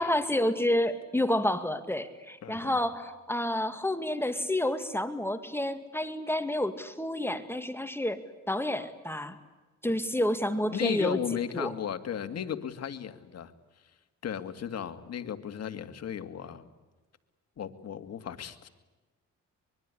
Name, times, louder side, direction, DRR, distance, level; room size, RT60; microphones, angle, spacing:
voice 1, 0.0-8.2 8.5-9.4 9.8-11.2 11.5-11.7, left 1 dB, 10° left, 9 dB, 2.2 m, -29 dB
voice 2, 2.4-2.8 10.7-13.5 14.2-16.7 17.6-18.7, left 8 dB, 55° left, 9 dB, 2.3 m, -35 dB
24.5 x 23.0 x 10.0 m, 1.2 s
cardioid pair, 90°, 30 cm